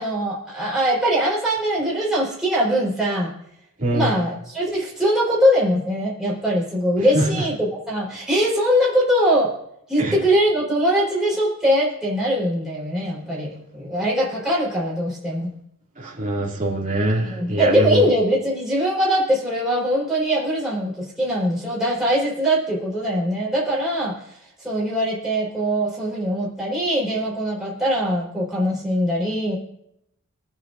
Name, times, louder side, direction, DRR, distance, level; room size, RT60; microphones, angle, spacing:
voice 1, 0.0-3.3 3.9-9.5 9.9-15.5 17.2-24.2 24.6-29.6, equal, 5° right, -7 dB, 4.2 m, -22 dB
voice 2, 16.0-18.0, right 1 dB, 35° right, -4 dB, 2.6 m, -23 dB
25.5 x 8.9 x 2.6 m, 0.75 s
head